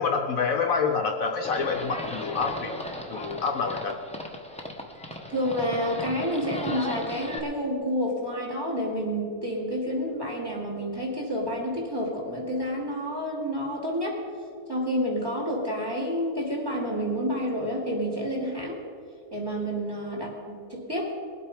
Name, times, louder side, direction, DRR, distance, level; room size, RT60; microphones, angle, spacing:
voice 1, 0.0-2.7 3.1-4.0, left 5 dB, 65° left, 4 dB, 1.1 m, -27 dB
Livestock farm animals working animals, 1.4-7.4, left 1 dB, 5° left, 0.8 m, -36 dB
voice 2, 5.3-14.2 14.7-18.8 19.3-21.1, equal, 15° right, -2 dB, 2.6 m, -29 dB
20.5 x 8.1 x 4.9 m, 2.3 s
omnidirectional pair, 1.7 m